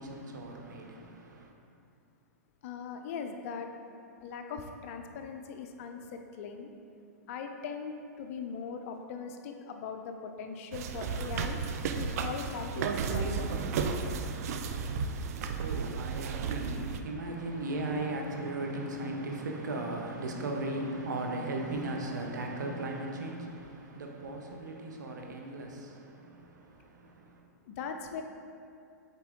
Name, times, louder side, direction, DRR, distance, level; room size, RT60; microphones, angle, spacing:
voice 1, 0.0-1.5 15.4-27.4, right 2 dB, 80° right, 2 dB, 1.0 m, -37 dB
voice 2, 2.6-3.7 4.2-6.7 7.3-11.6 11.9-14.0 27.7-28.2, left 6 dB, 50° left, 5 dB, 0.6 m, -40 dB
sound 1, 10.7-17.0, right 5 dB, 55° right, 0.4 m, -33 dB
7.4 x 4.2 x 3.8 m, 2.4 s
hypercardioid pair, 135°, 10 cm